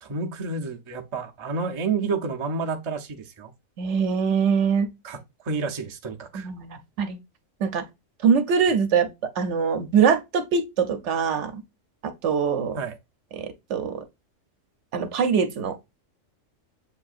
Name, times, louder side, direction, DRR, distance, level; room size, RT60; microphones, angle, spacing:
voice 1, 0.0-3.5 5.0-6.5 12.8-13.0, right 4 dB, 40° right, 0.4 m, -30 dB
voice 2, 3.8-4.9 6.3-7.2 7.6-7.8 8.2-9.1 9.4-11.6 12.2-12.8 13.3-14.0 14.9-15.8, right 6 dB, 70° right, 1.0 m, -23 dB
7.2 x 2.6 x 2.4 m
omnidirectional pair, 1.3 m